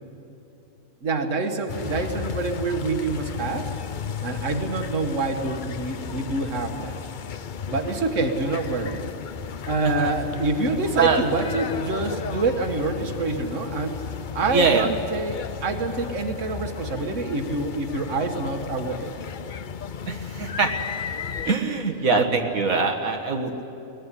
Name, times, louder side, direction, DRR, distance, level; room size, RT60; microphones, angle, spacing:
voice 1, 1.0-3.7 4.2-7.0 7.7-9.0 9.7-14.0 14.3-19.1, right 3 dB, 65° right, 5 dB, 1.8 m, -26 dB
sound 1, 1.7-21.5, left 7 dB, 50° left, 0.7 m, -34 dB
voice 2, 14.5-14.9 20.1-20.7 21.4-23.6, right 5 dB, 85° right, 2 dB, 1.9 m, -23 dB
23.0 x 18.5 x 9.9 m, 2.9 s
omnidirectional pair, 1.4 m